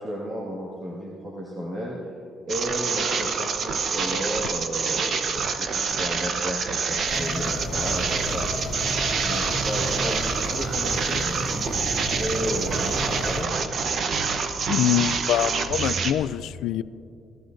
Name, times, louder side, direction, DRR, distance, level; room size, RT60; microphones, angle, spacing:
voice 1, 0.0-2.1 2.5-5.7 6.0-8.5 9.2-13.5, equal, 25° right, -5 dB, 1.8 m, -33 dB
sound 1, 2.5-16.1, right 5 dB, 40° right, 0.8 m, -27 dB
sound 2, 7.0-13.4, left 1 dB, 25° left, 1.9 m, -32 dB
voice 2, 14.6-16.8, left 11 dB, 75° left, 15 dB, 0.4 m, -24 dB
27.0 x 15.5 x 2.6 m, 2.6 s
cardioid pair, 170°, 0 cm